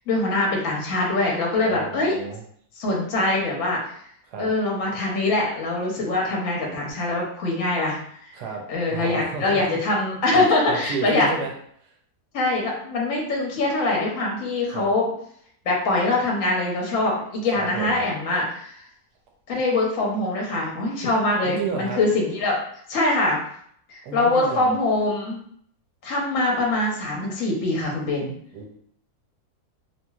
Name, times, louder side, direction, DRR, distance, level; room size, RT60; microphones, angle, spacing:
voice 1, 0.1-2.2 2.8-3.8 4.4-8.0 8.7-11.3 12.3-15.1 15.6-18.8 19.5-22.6 22.9-23.4 23.9-25.4 26.0-28.3, left 2 dB, 60° left, -2 dB, 1.1 m, -23 dB
voice 2, 1.6-2.4 4.3-4.5 8.3-8.6 8.9-9.8 10.3-11.5 11.8-11.9 14.7-14.9 17.5-18.0 21.4-22.0 24.0-24.7 28.5-28.8, right 4 dB, 90° right, 1 dB, 1.2 m, -32 dB
2.9 x 2.8 x 2.3 m, 0.64 s
omnidirectional pair, 1.7 m